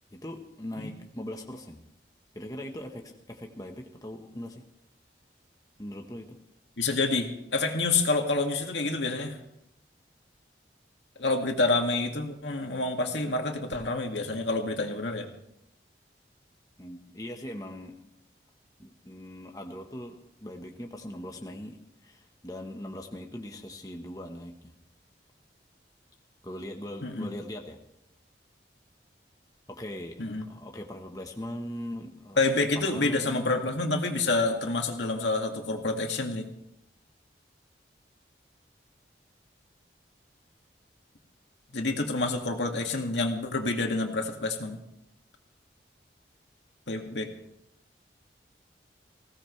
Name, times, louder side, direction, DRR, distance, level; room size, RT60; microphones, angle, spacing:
voice 1, 0.1-1.8 2.3-4.6 5.8-6.4 16.8-18.1 18.8-24.7 26.4-27.8 29.7-32.4 32.7-33.7, left 1 dB, 20° left, 2 dB, 1.2 m, -40 dB
voice 2, 6.8-9.4 11.2-15.3 27.0-27.3 30.2-30.5 32.4-36.5 41.7-44.8 46.9-47.3, left 3 dB, 80° left, 3 dB, 2.2 m, -28 dB
20.0 x 17.0 x 3.3 m, 0.80 s
head